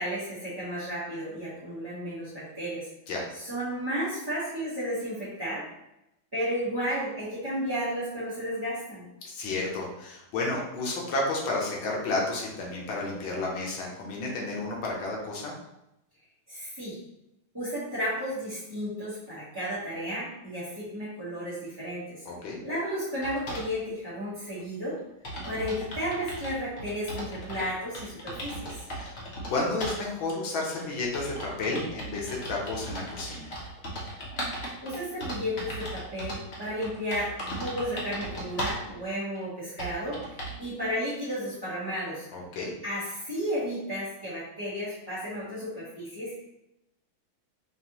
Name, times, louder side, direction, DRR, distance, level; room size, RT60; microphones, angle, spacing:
voice 1, 0.0-2.9 3.3-5.7 6.3-9.0 16.5-17.0 17.5-22.2 22.6-25.0 25.5-28.7 34.8-40.2 40.6-42.3 42.8-46.4, equal, 15° right, -13 dB, 0.8 m, -33 dB
voice 2, 9.2-15.5 22.3-22.6 28.9-29.2 29.5-33.5 42.3-42.7, left 2 dB, 75° left, -2 dB, 1.6 m, -31 dB
sound 1, 23.2-23.7 24.6-24.7 24.9-25.0 25.2-27.7 27.9-29.5 29.8-30.0 30.7-38.9 39.4-39.5 39.8-40.6, equal, 50° left, 0.8 m, -37 dB
5.1 x 2.5 x 2.9 m, 0.86 s
omnidirectional pair, 2.2 m